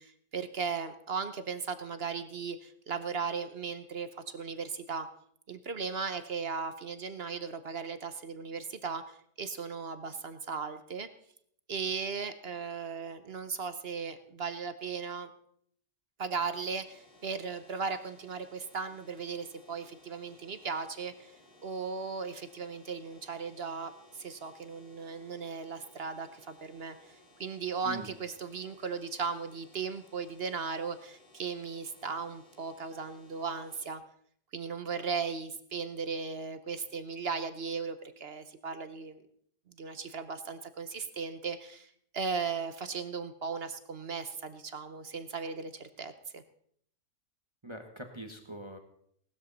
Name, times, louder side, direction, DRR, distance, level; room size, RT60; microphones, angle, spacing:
voice 1, 0.0-5.1 5.5-11.1 11.7-15.3 16.2-21.3 21.6-34.0 34.5-39.2 39.7-46.4, right 5 dB, 50° right, 11 dB, 0.9 m, -37 dB
sound 1, 16.6-33.9, left 2 dB, 35° left, 2.9 m, -60 dB
voice 2, 47.6-48.8, right 1 dB, 20° right, 5 dB, 1.2 m, -42 dB
18.5 x 13.0 x 4.1 m, 0.66 s
omnidirectional pair, 1.7 m